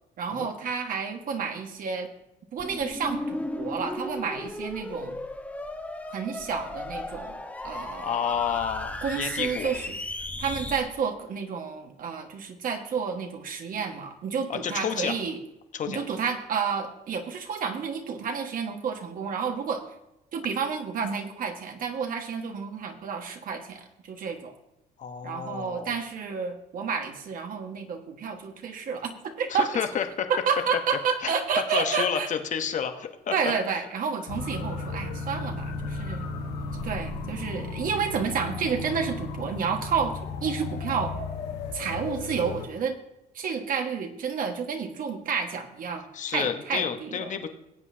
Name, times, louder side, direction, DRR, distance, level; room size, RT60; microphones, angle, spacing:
voice 1, 0.2-2.1 2.5-5.2 6.1-7.4 7.6-8.3 9.0-9.8 10.4-15.4 15.9-19.8 20.3-24.5 25.2-29.7 30.3-32.3 33.3-36.3 36.7-41.1 41.7-43.0 43.3-47.3, right 6 dB, 55° right, 4 dB, 1.7 m, -30 dB
sound 1, 2.6-10.8, left 2 dB, 10° left, 1.1 m, -35 dB
voice 2, 7.9-9.7 14.5-15.2 15.7-16.0 25.0-25.8 29.5-30.3 31.2-31.3 31.7-33.3 46.1-47.5, left 7 dB, 45° left, 7 dB, 1.2 m, -30 dB
sound 2, 34.3-42.7, left 3 dB, 85° left, 1.4 m, -34 dB
19.0 x 8.3 x 2.8 m, 0.90 s
cardioid pair, 110°, 17 cm